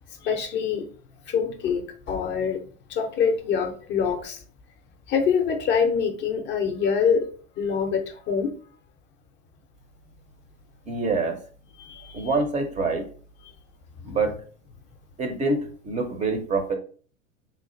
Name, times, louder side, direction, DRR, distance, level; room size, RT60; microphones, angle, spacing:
voice 1, 0.2-0.9 1.3-2.6 2.9-4.4 5.1-7.3 7.6-8.5 11.8-12.3 14.1-14.2, left 6 dB, 30° left, 0.5 m, -25 dB
voice 2, 10.9-11.4 12.1-13.1 14.0-14.4 15.2-16.8, right 3 dB, 20° right, 0.5 m, -26 dB
3.2 x 2.4 x 3.8 m
hypercardioid pair, 95°, 38 cm